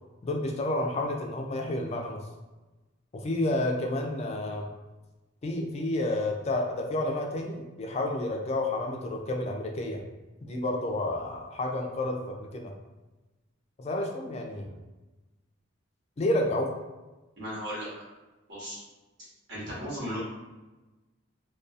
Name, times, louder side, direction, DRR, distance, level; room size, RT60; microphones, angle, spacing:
voice 1, 0.2-2.2 3.1-4.7 5.4-10.0 10.4-12.7 13.8-14.7 16.2-16.7, left 1 dB, 35° left, 2 dB, 0.3 m, -30 dB
voice 2, 17.4-17.9 18.5-18.8 19.5-20.2, equal, 65° right, -8 dB, 1.3 m, -35 dB
2.6 x 2.3 x 2.4 m, 1.1 s
head